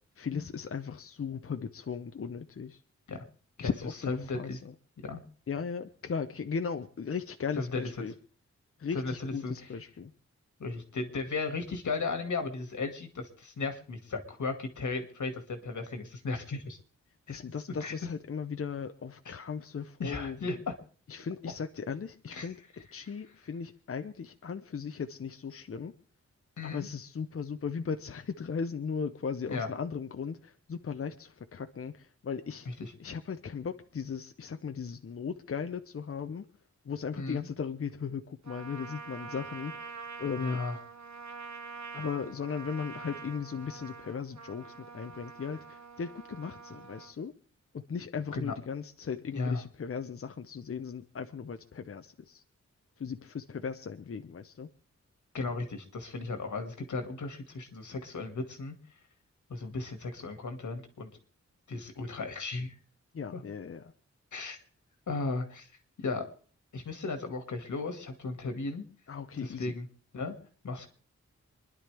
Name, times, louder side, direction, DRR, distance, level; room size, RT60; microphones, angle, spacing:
voice 1, 0.2-2.8 3.6-4.7 5.5-8.1 8.8-10.1 17.3-20.4 21.1-25.9 26.6-32.7 33.0-36.4 36.9-40.6 41.9-47.3 47.7-52.4 53.0-54.7 63.1-63.8 69.1-69.7, left 6 dB, 50° left, 7 dB, 0.7 m, -37 dB
voice 2, 4.1-4.6 5.0-5.2 7.6-8.1 8.9-9.7 10.6-16.8 17.3-17.4 17.7-17.9 19.3-19.4 20.0-20.7 22.3-22.5 26.6-26.9 29.5-29.7 32.7-32.9 37.2-37.5 40.4-40.8 48.3-48.5 49.3-49.6 55.3-58.7 59.5-61.1 61.7-62.7 63.3-63.4 64.3-64.6 65.1-65.7 66.0-66.2 66.7-68.8 69.4-69.9 70.1-70.3 70.6-70.9, left 3 dB, 85° left, 5 dB, 2.1 m, -35 dB
Trumpet, 38.4-47.1, right 5 dB, 70° right, 1.3 m, -45 dB
26.5 x 11.0 x 3.4 m, 0.43 s
wide cardioid pair, 110°, 29 cm